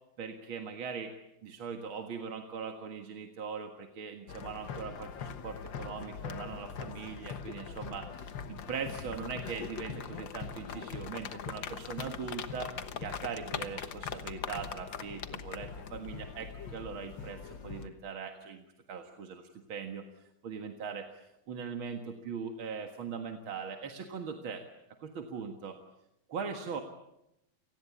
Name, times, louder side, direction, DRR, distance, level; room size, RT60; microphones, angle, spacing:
voice 1, 0.2-1.1 1.4-12.7 13.0-20.0 20.4-21.1 21.5-24.6 25.0-25.8 26.3-26.8, right 6 dB, 80° right, 5 dB, 2.5 m, -40 dB
sound 1, 4.3-17.9, left 7 dB, 65° left, 1.9 m, -41 dB
29.5 x 19.5 x 8.5 m, 0.85 s
omnidirectional pair, 2.2 m